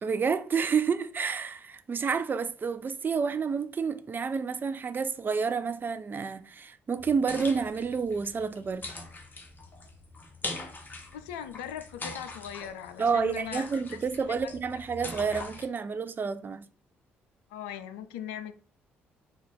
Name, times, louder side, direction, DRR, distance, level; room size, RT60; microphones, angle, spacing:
voice 1, 0.0-8.9 13.0-16.7, right 5 dB, 35° right, 0.5 m, -29 dB
sound 1, 7.0-15.7, left 2 dB, 30° left, 1.1 m, -42 dB
voice 2, 11.1-13.7 14.4-14.5 17.5-18.5, left 9 dB, 70° left, 0.4 m, -39 dB
4.0 x 2.4 x 3.6 m
figure-of-eight pair, 45°, 6 cm